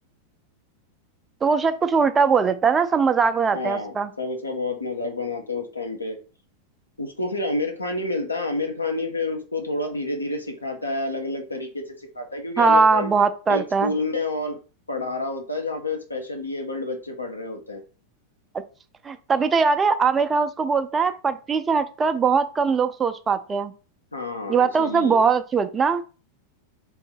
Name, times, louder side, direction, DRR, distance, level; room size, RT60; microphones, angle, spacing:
voice 1, 1.4-4.1 12.6-13.9 19.0-23.7 24.5-26.0, right 5 dB, 20° right, 10 dB, 0.4 m, -21 dB
voice 2, 3.5-6.2 7.0-13.1 13.5-14.6 14.9-17.8 24.1-25.2, left 2 dB, 80° left, 3 dB, 0.9 m, -29 dB
3.6 x 2.7 x 4.5 m, 0.36 s
figure-of-eight pair, 90°, 0 cm